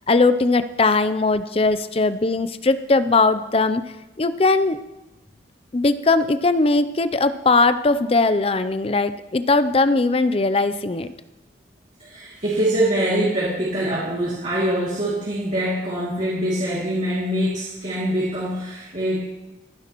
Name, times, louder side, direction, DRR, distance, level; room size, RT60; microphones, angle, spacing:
voice 1, 0.1-3.9 4.2-4.8 5.7-11.1, left 3 dB, 30° left, 12 dB, 0.5 m, -19 dB
voice 2, 12.0-19.2, right 1 dB, 40° right, -8 dB, 2.5 m, -24 dB
26.5 x 10.0 x 3.0 m, 1.0 s
head